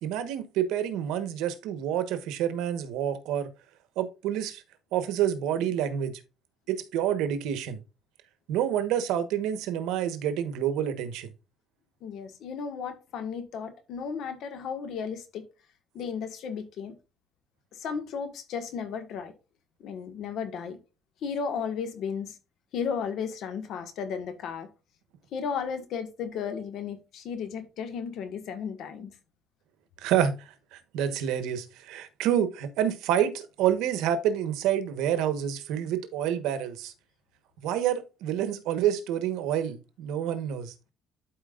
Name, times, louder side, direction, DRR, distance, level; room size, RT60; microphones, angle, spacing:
voice 1, 0.0-3.5 4.0-4.6 4.9-6.2 6.7-7.8 8.5-11.3 30.0-30.4 30.7-36.9 37.6-40.7, right 10 dB, 85° right, 1.2 m, -28 dB
voice 2, 12.0-15.4 15.9-17.0 17.7-19.3 19.8-20.8 21.2-22.4 22.7-24.7 25.3-29.1, left 6 dB, 60° left, 1.6 m, -34 dB
12.0 x 4.7 x 2.5 m
cardioid pair, 150°, 0 cm